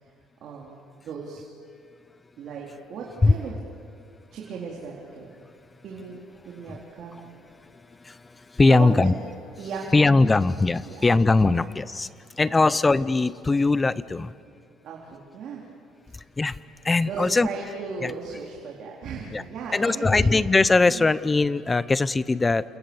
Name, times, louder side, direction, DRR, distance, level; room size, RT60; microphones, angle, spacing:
voice 1, 0.4-1.4 2.4-3.6 4.3-5.4 5.8-6.2 6.4-7.4 8.6-9.1 9.6-10.4 10.8-11.1 11.5-11.7 12.4-12.8 14.8-15.6 17.1-20.3 20.9-21.1, right 5 dB, 50° right, -2 dB, 4.0 m, -36 dB
voice 2, 8.5-9.1 9.9-12.1 12.4-14.3 16.4-16.6 16.8-17.5 18.0-18.1 19.3-19.4 19.7-22.6, left 3 dB, 15° left, 16 dB, 0.7 m, -20 dB
30.0 x 27.5 x 7.2 m, 2.2 s
cardioid pair, 145°, 0 cm